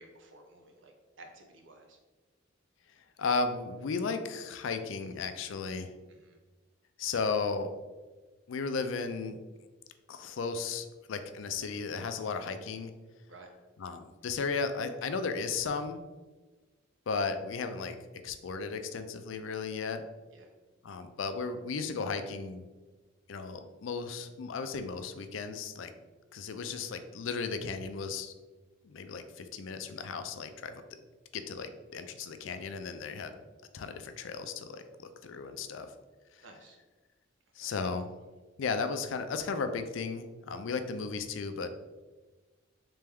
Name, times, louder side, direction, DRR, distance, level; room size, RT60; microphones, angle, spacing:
voice 1, 0.0-2.0 6.1-6.4 13.3-13.5 20.3-20.5 36.4-36.8 37.5-37.7, right 2 dB, 70° right, 3 dB, 0.7 m, -54 dB
voice 2, 3.2-5.9 7.0-7.7 8.5-9.4 10.1-12.9 13.8-16.0 17.1-18.0 18.2-20.0 20.8-22.7 23.3-25.9 26.3-28.3 28.8-30.8 31.3-33.3 33.7-35.9 36.3-36.4 37.6-38.1 38.6-41.7, left 4 dB, 75° left, 8 dB, 0.4 m, -35 dB
3.4 x 3.3 x 3.4 m, 1.2 s
head